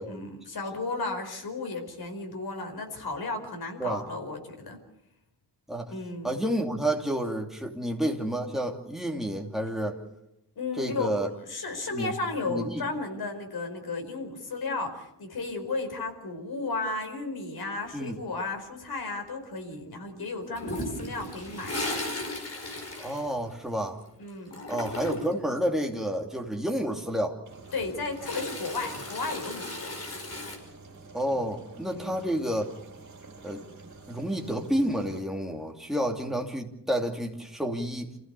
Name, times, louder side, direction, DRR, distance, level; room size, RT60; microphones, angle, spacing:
voice 1, 0.0-4.8 5.9-6.3 10.6-21.9 24.2-24.6 27.7-29.9 31.9-32.2, left 3 dB, 60° left, 5 dB, 4.9 m, -34 dB
voice 2, 6.2-9.9 10.8-11.3 11.9-12.1 12.4-12.8 17.9-18.2 23.0-24.0 24.7-27.3 31.1-32.7 33.4-33.6 34.1-38.1, right 1 dB, ahead, 1 dB, 2.8 m, -30 dB
Toilet flush, 20.5-24.0 24.3-25.5 27.5-30.6, left 2 dB, 35° left, 5.1 m, -36 dB
sound 1, 27.4-35.2, right 3 dB, 45° right, 3.5 m, -49 dB
28.5 x 16.0 x 6.9 m, 0.84 s
wide cardioid pair, 155°, 41 cm